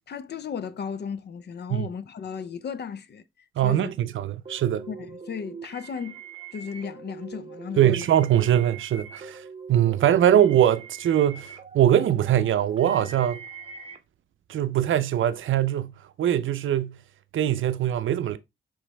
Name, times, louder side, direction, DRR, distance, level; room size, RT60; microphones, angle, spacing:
voice 1, 0.1-3.2 3.6-3.9 4.9-6.2 6.5-8.1, left 6 dB, 55° left, 0.6 m, -35 dB
voice 2, 3.6-4.9 7.8-9.4 9.7-13.4 14.5-17.0 17.3-18.4, right 11 dB, 75° right, 0.5 m, -22 dB
sound 1, 4.4-14.0, right 5 dB, 30° right, 0.7 m, -43 dB
5.0 x 3.1 x 3.2 m
cardioid pair, 70°, 21 cm